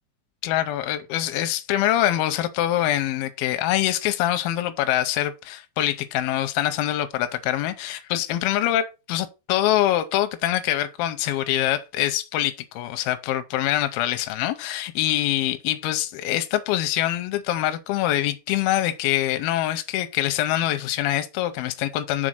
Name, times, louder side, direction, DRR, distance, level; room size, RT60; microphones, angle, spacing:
voice 1, 0.4-22.3, left 13 dB, 90° left, 2.5 m, -24 dB
6.2 x 4.0 x 6.3 m
omnidirectional pair, 4.2 m